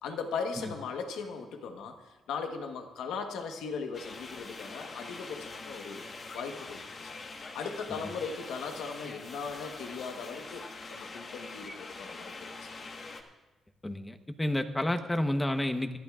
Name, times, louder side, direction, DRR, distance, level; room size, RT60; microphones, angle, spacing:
voice 1, 0.0-6.0 6.3-7.1 7.5-12.7, left 5 dB, 90° left, 5 dB, 1.2 m, -38 dB
sound 1, 3.9-13.2, left 3 dB, 50° left, 1.4 m, -44 dB
voice 2, 13.8-16.0, left 1 dB, 15° left, 8 dB, 1.0 m, -30 dB
22.0 x 12.0 x 2.5 m, 1.1 s
cardioid pair, 75°, 0 cm